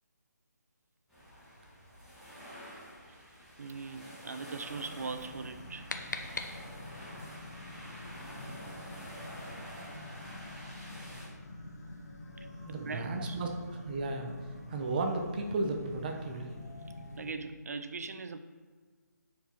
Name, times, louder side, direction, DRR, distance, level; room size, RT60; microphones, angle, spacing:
sound 1, 1.1-11.3, equal, ahead, 1.8 m, -48 dB
voice 1, 3.6-5.9 12.7-13.4 17.2-18.4, right 4 dB, 55° right, 10 dB, 0.6 m, -40 dB
sound 2, 4.6-17.3, left 2 dB, 55° left, 1.4 m, -47 dB
sound 3, 5.4-7.1, left 3 dB, 75° left, 0.8 m, -41 dB
voice 2, 12.7-16.5, right 2 dB, 30° right, 3 dB, 0.8 m, -34 dB
8.8 x 4.9 x 4.4 m, 1.5 s
figure-of-eight pair, 160°, 10 cm